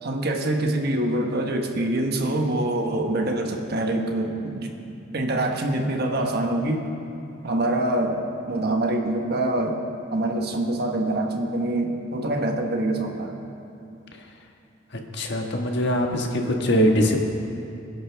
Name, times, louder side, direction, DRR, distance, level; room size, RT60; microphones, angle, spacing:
voice 1, 0.0-4.8 5.1-6.9 7.4-9.8 10.1-13.4, right 1 dB, 55° right, 3 dB, 1.3 m, -25 dB
voice 2, 15.1-17.2, equal, 60° left, 2 dB, 1.5 m, -22 dB
25.0 x 10.5 x 3.5 m, 2.7 s
head